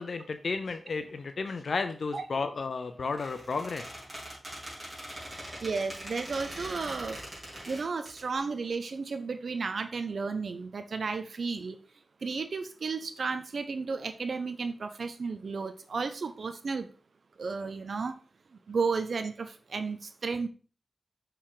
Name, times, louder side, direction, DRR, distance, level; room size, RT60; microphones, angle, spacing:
voice 1, 0.0-4.0, left 4 dB, 75° left, 8 dB, 0.4 m, -33 dB
Squeak, 3.1-8.2, right 1 dB, 25° right, 3.5 m, -42 dB
voice 2, 5.6-7.2 7.7-11.8 12.2-16.9 17.4-18.1 18.7-20.5, right 4 dB, 75° right, 9 dB, 0.5 m, -33 dB
6.1 x 4.5 x 3.7 m, 0.39 s
wide cardioid pair, 65°, 0 cm